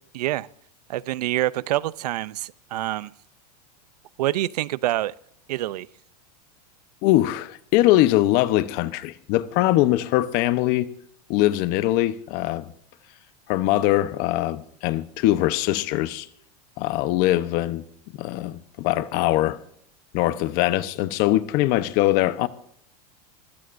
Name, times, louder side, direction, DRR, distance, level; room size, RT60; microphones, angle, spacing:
voice 1, 0.1-0.5 0.9-3.1 4.2-5.1 5.5-5.9, right 15 dB, 85° right, 0.6 m, -26 dB
voice 2, 7.0-10.9 11.3-12.6 13.5-16.3 16.8-17.8 18.2-19.6 20.1-22.5, left 15 dB, 50° left, 0.9 m, -22 dB
25.5 x 15.5 x 2.6 m
supercardioid pair, 135°, 20 cm